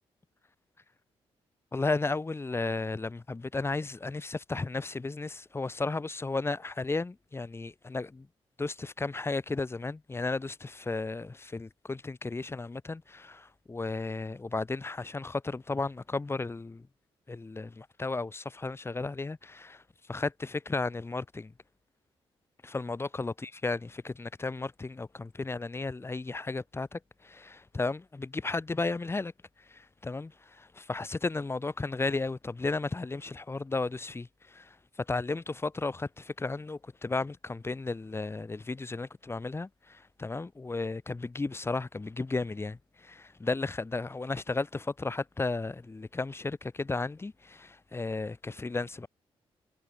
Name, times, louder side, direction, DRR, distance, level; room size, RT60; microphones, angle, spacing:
voice 1, 1.7-8.3 8.6-16.9 17.3-19.8 20.1-21.5 22.6-29.3 29.7-49.1, left 3 dB, 25° left, 7.4 m, -34 dB
cardioid pair, 95°, 10 cm